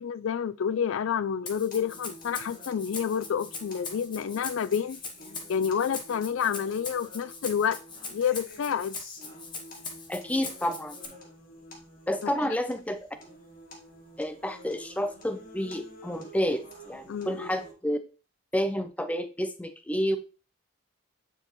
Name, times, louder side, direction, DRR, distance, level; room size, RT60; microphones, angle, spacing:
voice 1, 0.0-5.0 5.5-7.8 8.1-9.0 12.2-12.5 17.1-17.5, left 7 dB, 75° left, 0.4 m, -29 dB
Rattle (instrument), 1.5-11.1, left 4 dB, 20° left, 1.0 m, -41 dB
sound 1, 1.7-17.7, equal, 40° left, 1.7 m, -50 dB
voice 2, 10.1-11.0 12.1-13.0 14.2-18.0 18.5-20.2, equal, 5° left, 0.5 m, -30 dB
9.5 x 4.6 x 3.1 m
head